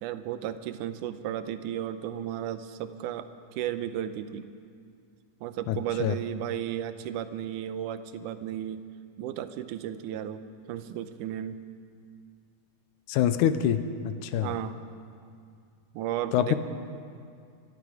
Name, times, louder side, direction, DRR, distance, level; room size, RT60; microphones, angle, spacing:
voice 1, 0.0-4.5 5.4-8.8 9.2-10.4 10.7-11.6 14.4-14.8 15.9-16.6, right 11 dB, 85° right, 11 dB, 2.2 m, -34 dB
voice 2, 5.7-6.2 13.1-14.5 16.3-16.6, left 10 dB, 85° left, 11 dB, 2.1 m, -26 dB
26.0 x 11.0 x 5.0 m, 2.3 s
omnidirectional pair, 3.6 m